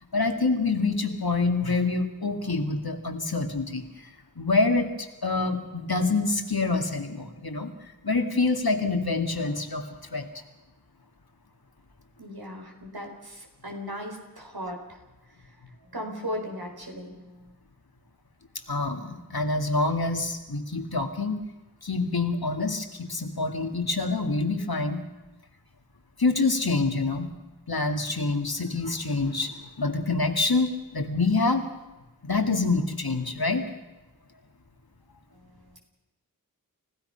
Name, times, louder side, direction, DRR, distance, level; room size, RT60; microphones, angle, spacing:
voice 1, 0.1-3.8 4.4-7.7 8.0-9.9 10.1-10.3 18.7-21.4 21.8-25.0 26.2-27.3 27.7-31.6 32.2-33.6, left 3 dB, 85° left, 5 dB, 2.2 m, -26 dB
voice 2, 12.2-15.0 15.3-15.5 15.8-17.5 35.3-35.8, equal, 90° right, 2 dB, 4.5 m, -38 dB
30.0 x 16.0 x 5.8 m, 1.1 s
wide cardioid pair, 40°, 36 cm